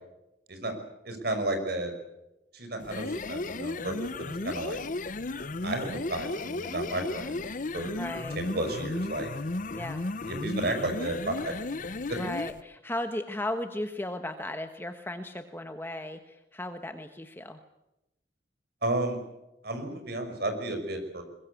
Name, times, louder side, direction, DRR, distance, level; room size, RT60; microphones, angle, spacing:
voice 1, 1.0-1.9 2.5-4.8 5.6-7.4 7.7-8.0 8.3-9.3 10.3-11.5 12.1-12.2 18.8-19.2 19.6-21.2, right 2 dB, 65° right, 7 dB, 5.8 m, -32 dB
sound 1, 2.8-12.6, left 2 dB, 50° left, 0.8 m, -34 dB
voice 2, 8.0-8.4 9.7-10.1 12.1-17.6, left 1 dB, 15° left, 7 dB, 1.2 m, -36 dB
22.0 x 21.5 x 8.4 m, 0.94 s
head